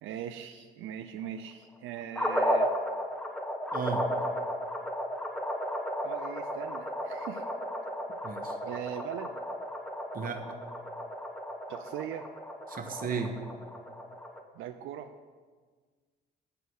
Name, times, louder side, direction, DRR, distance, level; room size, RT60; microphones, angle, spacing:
voice 1, 0.0-2.7 6.0-7.5 8.6-9.4 11.7-12.3 14.5-15.1, right 10 dB, 85° right, 7 dB, 0.4 m, -40 dB
sound 1, 2.1-14.4, equal, 5° left, 0.9 m, -34 dB
voice 2, 3.7-4.0 8.2-8.6 10.1-10.4 12.7-13.3, right 6 dB, 45° right, 5 dB, 1.1 m, -34 dB
8.2 x 5.6 x 6.4 m, 1.5 s
cardioid pair, 90°, 20 cm